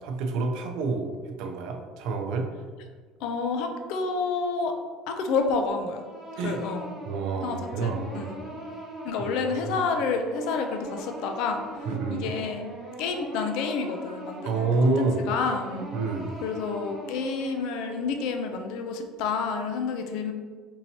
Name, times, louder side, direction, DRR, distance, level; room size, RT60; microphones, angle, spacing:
voice 1, 0.0-2.5 6.4-6.6 7.0-8.3 9.2-9.8 11.9-12.3 14.4-15.2 15.9-16.3, right 4 dB, 65° right, 3 dB, 0.5 m, -28 dB
voice 2, 3.2-4.7 5.1-6.0 6.4-6.9 7.4-8.6 9.0-12.6 13.0-15.9 16.4-20.3, left 4 dB, 65° left, 5 dB, 0.4 m, -29 dB
sound 1, 5.9-18.7, right 1 dB, 25° right, 1.2 m, -41 dB
4.5 x 2.8 x 2.8 m, 1.5 s
cardioid pair, 175°, 0 cm